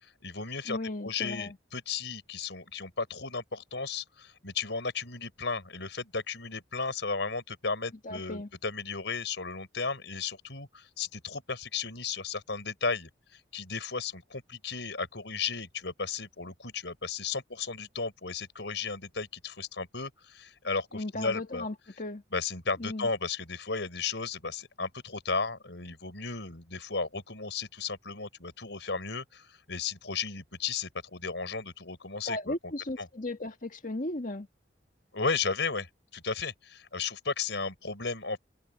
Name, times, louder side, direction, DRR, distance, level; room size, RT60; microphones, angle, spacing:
voice 1, 0.0-21.7 22.3-32.5 33.0-33.1 35.1-38.4, left 4 dB, 70° left, 5.5 m, -34 dB
voice 2, 0.7-1.6 8.0-8.5 20.9-22.2 22.8-23.1 32.3-34.5, left 2 dB, 45° left, 1.8 m, -36 dB
head